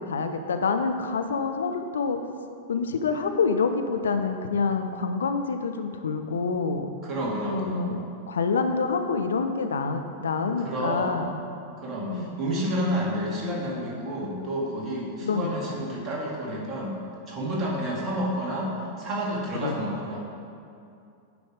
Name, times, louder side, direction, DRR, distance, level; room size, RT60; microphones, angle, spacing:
voice 1, 0.0-2.2 2.7-6.9 7.5-11.4 12.1-12.3 15.2-15.5 19.6-19.7, left 4 dB, 65° left, 7 dB, 0.5 m, -27 dB
voice 2, 7.0-7.9 10.6-11.1 11.8-17.0 17.3-18.7 19.0-20.2, equal, 30° right, -3 dB, 2.0 m, -30 dB
9.2 x 5.2 x 5.0 m, 2.5 s
figure-of-eight pair, 90°, 0 cm